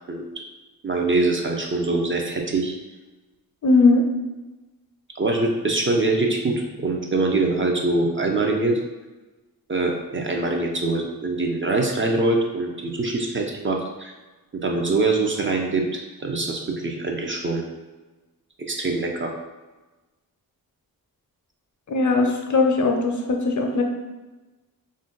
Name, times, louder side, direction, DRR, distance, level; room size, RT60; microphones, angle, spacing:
voice 1, 0.8-2.7 5.2-8.8 9.7-14.1 14.5-17.6 18.6-19.3, right 2 dB, 35° right, 1 dB, 0.4 m, -24 dB
voice 2, 3.6-4.0 21.9-23.8, left 3 dB, 50° left, 2 dB, 0.5 m, -19 dB
2.5 x 2.2 x 3.7 m, 1.2 s
cardioid pair, 70°, 37 cm